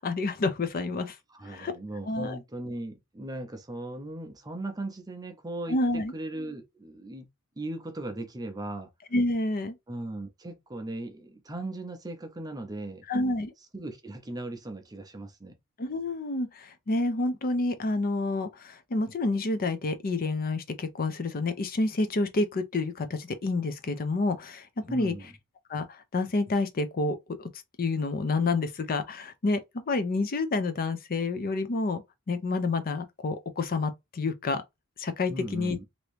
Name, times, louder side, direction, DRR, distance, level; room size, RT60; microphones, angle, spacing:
voice 1, 0.0-1.2 1.5-1.7 2.1-2.4 5.7-6.1 9.1-9.7 13.1-13.5 15.8-25.1 25.7-27.5 27.8-32.0 32.3-34.6 35.0-35.8, left 3 dB, 40° left, 0.5 m, -29 dB
voice 2, 1.3-7.3 7.6-8.9 9.9-13.0 13.7-15.6 24.9-25.3 35.3-35.8, right 1 dB, 15° right, 0.5 m, -38 dB
2.9 x 2.6 x 3.2 m
head